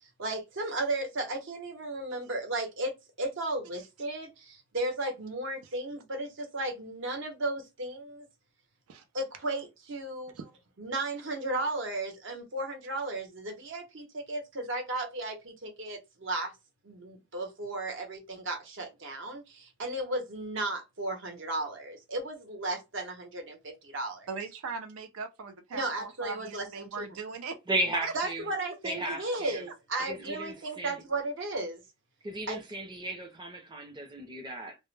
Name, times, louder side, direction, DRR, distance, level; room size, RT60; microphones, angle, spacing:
voice 1, 0.0-2.9 3.2-8.3 9.1-10.3 10.8-16.5 16.8-24.3 25.7-27.0 28.1-31.8 32.5-32.6, right 2 dB, 60° right, 0.8 m, -35 dB
voice 2, 24.3-27.6 28.0-28.1 29.9-30.0, right 5 dB, 80° right, 0.4 m, -39 dB
voice 3, 27.7-28.5 28.8-29.6 30.1-31.0 32.2-34.8, right 1 dB, 20° right, 0.5 m, -35 dB
2.1 x 2.0 x 3.1 m
head